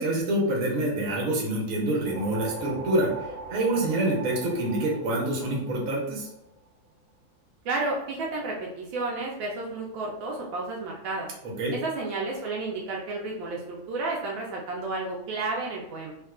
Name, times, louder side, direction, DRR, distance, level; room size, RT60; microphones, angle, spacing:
voice 1, 0.0-6.3 11.4-11.8, right 1 dB, 55° right, -3 dB, 1.1 m, -26 dB
sound 1, 1.8-6.4, right 2 dB, 75° left, 1.4 m, -40 dB
voice 2, 7.6-11.3 11.8-16.1, right 3 dB, 75° right, -2 dB, 1.3 m, -31 dB
3.5 x 2.8 x 2.3 m, 0.85 s
omnidirectional pair, 2.2 m